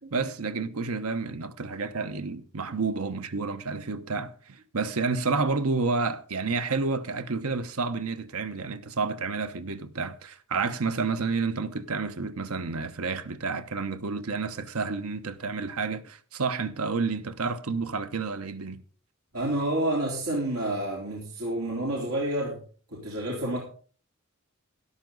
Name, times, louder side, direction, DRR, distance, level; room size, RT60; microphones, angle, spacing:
voice 1, 0.1-18.8, right 4 dB, 85° right, 1.0 m, -30 dB
voice 2, 19.3-22.6 22.9-23.6, right 1 dB, 70° right, 3.7 m, -29 dB
12.5 x 12.0 x 3.9 m
head